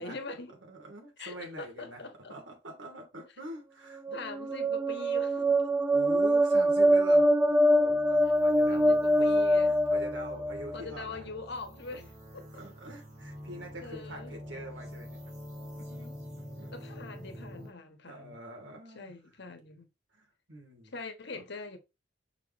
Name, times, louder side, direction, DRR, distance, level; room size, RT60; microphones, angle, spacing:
voice 1, 0.0-0.5 1.2-2.4 4.1-5.7 8.2-8.4 8.7-9.8 10.7-12.6 13.8-14.3 16.7-18.4 18.9-19.9 20.8-21.8, left 3 dB, 60° left, 1.4 m, -43 dB
voice 2, 0.7-4.2 5.9-9.0 9.7-11.2 11.9-12.1 12.5-15.2 15.7-16.7 18.1-19.1 20.1-20.9 21.3-21.4, right 1 dB, 70° right, 3.0 m, -45 dB
sound 1, 3.9-10.8, equal, 10° right, 0.4 m, -24 dB
sound 2, 7.9-17.7, equal, 35° right, 2.5 m, -46 dB
6.0 x 5.7 x 3.1 m
head